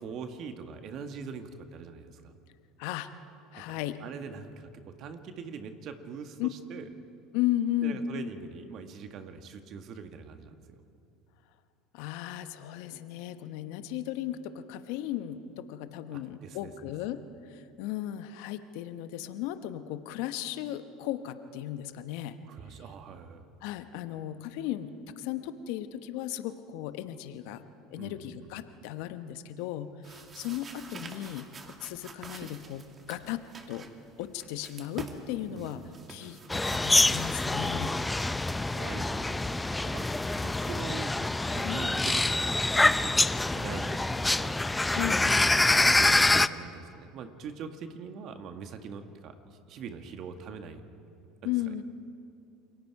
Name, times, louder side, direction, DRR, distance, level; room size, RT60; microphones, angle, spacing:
voice 1, 0.0-2.4 3.6-6.9 7.8-10.8 16.1-16.7 22.5-23.5 27.9-28.5 35.5-36.1 38.4-40.1 40.4-41.1 41.5-44.6 45.6-50.8 51.4-51.5, right 6 dB, 55° right, 7 dB, 1.7 m, -43 dB
voice 2, 2.8-3.1 3.5-4.0 6.4-6.5 7.3-8.0 11.9-22.4 23.6-27.6 27.9-33.4 33.7-33.9 34.2-35.8 36.1-38.0 41.6-41.9 44.9-45.6 51.4-51.8, left 13 dB, 70° left, 10 dB, 1.0 m, -35 dB
sound 1, 30.0-38.3, right 4 dB, 30° right, 2.2 m, -47 dB
sound 2, 36.5-46.5, left 2 dB, 10° left, 0.6 m, -26 dB
28.0 x 23.0 x 4.8 m, 2.5 s
hypercardioid pair, 80°, 0 cm